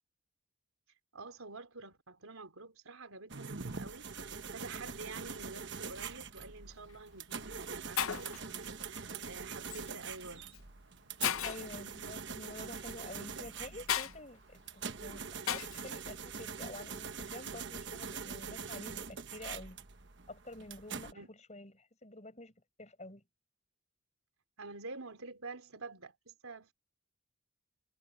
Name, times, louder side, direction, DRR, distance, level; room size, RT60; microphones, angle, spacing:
voice 1, 1.1-10.5 21.1-21.3 24.6-26.7, right 3 dB, 85° right, 4.0 m, -48 dB
sound 1, 3.3-21.1, right 5 dB, 55° right, 1.2 m, -44 dB
Shatter, 6.7-7.0 7.7-7.8 8.0-8.4 9.7-9.9 10.5-10.6 11.2-11.7 13.9-14.1 15.5-15.9, left 10 dB, 80° left, 0.7 m, -34 dB
voice 2, 11.4-14.6 15.0-19.8 20.3-22.5 22.8-23.2, left 2 dB, 35° left, 7.0 m, -49 dB
head